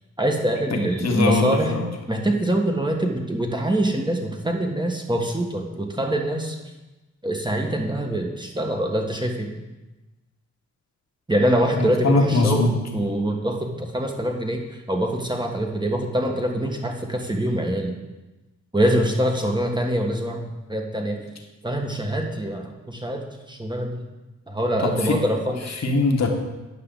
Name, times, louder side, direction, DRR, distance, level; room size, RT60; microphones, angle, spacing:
voice 1, 0.2-1.7 2.1-6.6 7.2-9.5 11.3-17.9 18.7-21.3 21.6-24.0 24.5-25.8, right 1 dB, 15° right, 2 dB, 1.5 m, -24 dB
voice 2, 0.7-1.9 11.8-12.8 24.8-25.2 25.8-26.3, left 3 dB, 55° left, 2 dB, 1.5 m, -21 dB
9.5 x 5.7 x 3.9 m, 1.1 s
supercardioid pair, 40°, 32 cm